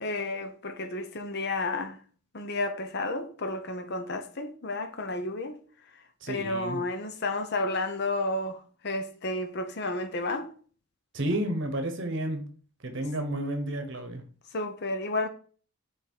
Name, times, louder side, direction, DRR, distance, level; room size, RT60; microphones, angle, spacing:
voice 1, 0.0-2.0 2.3-5.6 6.3-10.5 14.5-15.3, left 2 dB, 45° left, 0.7 m, -31 dB
voice 2, 6.2-6.8 11.1-12.5 12.8-14.2, right 1 dB, 55° right, 1.0 m, -31 dB
5.9 x 3.6 x 4.4 m
head